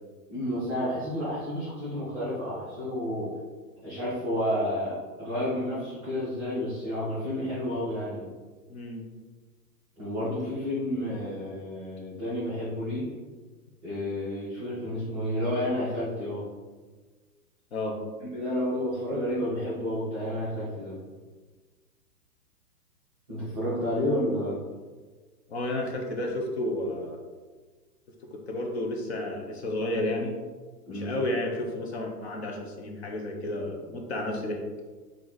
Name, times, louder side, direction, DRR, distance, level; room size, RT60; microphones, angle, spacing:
voice 1, 0.3-3.3 3.8-8.3 10.0-13.1 13.8-16.4 18.2-21.0 23.3-24.6 30.8-31.2, left 1 dB, 5° right, -18 dB, 0.5 m, -30 dB
voice 2, 8.7-9.0 17.7-18.0 25.5-27.2 28.3-30.4 30.9-34.6, left 1 dB, 40° left, 1 dB, 0.6 m, -31 dB
4.6 x 2.6 x 3.9 m, 1.4 s
hypercardioid pair, 160°, 49 cm